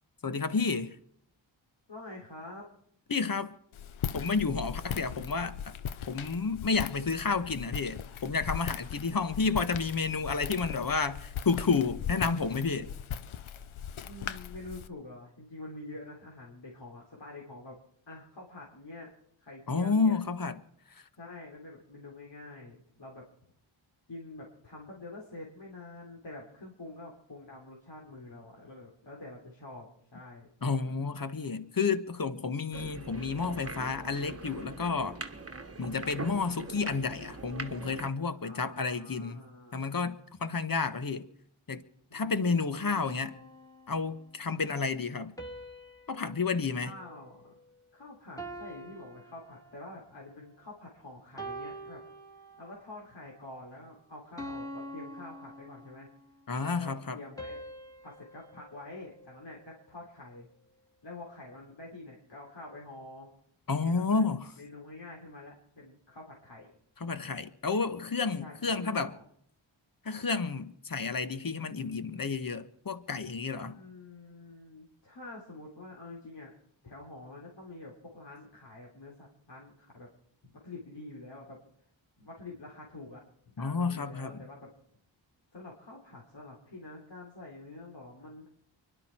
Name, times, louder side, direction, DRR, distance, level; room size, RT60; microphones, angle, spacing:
voice 1, 0.2-1.0 3.1-3.5 4.1-5.7 6.1-12.9 19.7-20.6 20.9-21.0 30.6-35.2 35.8-39.4 39.7-41.3 41.7-41.8 42.1-43.4 43.9-45.3 46.1-46.9 56.5-57.2 63.7-64.5 67.0-69.1 70.0-73.8 83.6-84.4, left 4 dB, 45° left, 1.4 m, -31 dB
voice 2, 1.9-2.7 14.0-17.8 18.1-19.1 19.4-20.2 21.2-23.2 24.1-30.5 38.3-39.8 42.1-43.4 46.7-47.5 47.9-52.0 52.6-56.1 56.6-57.6 58.0-60.5 61.0-63.3 63.8-64.3 64.6-66.7 68.4-69.1 73.6-76.5 76.8-80.1 80.4-81.6 82.2-83.2 83.6-84.7 85.5-88.5, left 2 dB, 60° left, 3.7 m, -47 dB
Walk footsteps, 3.7-14.9, left 8 dB, 85° left, 0.8 m, -39 dB
sound 1, 32.7-38.1, right 3 dB, 30° right, 1.3 m, -42 dB
sound 2, 43.1-44.4 45.4-47.9 48.4-50.1 50.7-50.9 51.4-52.9 53.4-53.7 54.4-56.3 57.4-59.8, right 1 dB, 5° left, 2.4 m, -46 dB
24.5 x 11.5 x 4.5 m
cardioid pair, 45°, 47 cm